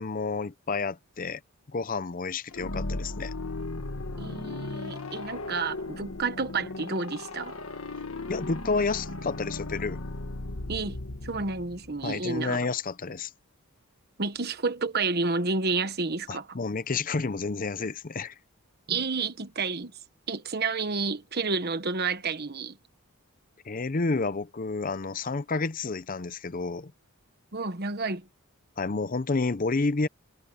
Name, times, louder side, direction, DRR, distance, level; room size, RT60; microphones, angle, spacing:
voice 1, 0.0-1.4 1.7-3.3 8.3-10.0 12.0-13.3 16.3-18.4 23.6-26.9 28.8-30.1, left 3 dB, 40° left, 0.6 m, -30 dB
sound 1, 2.5-12.2, left 2 dB, 70° left, 1.5 m, -37 dB
voice 2, 4.2-7.6 10.7-12.6 14.2-16.5 18.9-19.9 20.3-22.8 27.5-28.3, right 4 dB, 45° right, 1.2 m, -30 dB
head